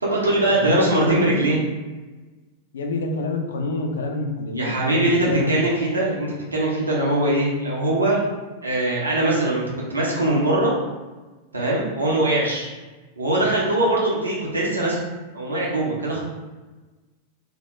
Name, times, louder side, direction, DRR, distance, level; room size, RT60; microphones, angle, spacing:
voice 1, 0.0-1.6 4.5-8.2 8.6-9.6 9.9-10.7 11.5-12.7 13.2-15.0 15.3-16.2, right 1 dB, 80° right, -5 dB, 0.6 m, -21 dB
voice 2, 0.6-1.3 2.7-5.6, left 3 dB, 65° left, 3 dB, 0.3 m, -27 dB
2.3 x 2.0 x 2.9 m, 1.2 s
figure-of-eight pair, 90°, 0 cm